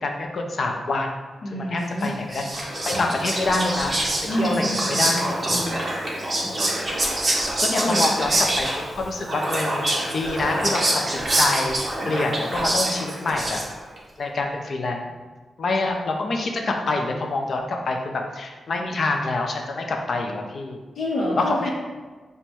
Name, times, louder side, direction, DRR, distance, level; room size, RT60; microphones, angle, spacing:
voice 1, 0.0-1.1 1.5-4.0 4.4-5.4 7.6-11.8 12.0-13.6 14.2-15.0 15.6-20.8 21.4-21.7, left 2 dB, 45° left, 2 dB, 0.5 m, -26 dB
voice 2, 1.4-2.1 4.2-5.8 7.8-8.2 20.9-21.7, equal, 85° left, -7 dB, 0.8 m, -28 dB
Whispering, 2.0-14.0, right 1 dB, 25° right, 0.7 m, -25 dB
4.3 x 2.2 x 4.5 m, 1.3 s
wide cardioid pair, 165°, 0 cm